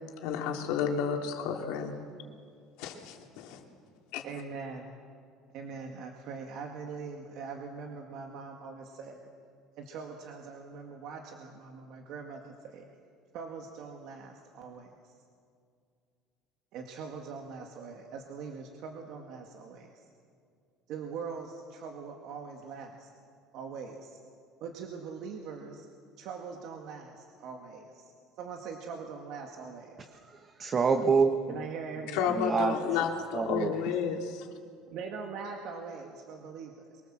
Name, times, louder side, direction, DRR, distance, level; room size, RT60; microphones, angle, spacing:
voice 1, 0.2-2.0 2.8-3.6 4.1-4.2 32.1-34.4, left 7 dB, 80° left, 2 dB, 2.9 m, -31 dB
voice 2, 4.2-5.0 5.5-9.2 9.8-12.8 13.3-15.1 16.7-20.0 20.9-23.1 23.5-24.2 24.6-25.9 26.2-29.9 31.5-32.3 34.9-37.0, right 5 dB, 60° right, 2 dB, 2.0 m, -42 dB
voice 3, 30.3-31.7 32.4-32.7 33.3-33.7, right 5 dB, 30° right, 7 dB, 1.1 m, -27 dB
23.5 x 22.5 x 7.6 m, 2.3 s
cardioid pair, 140°, 0 cm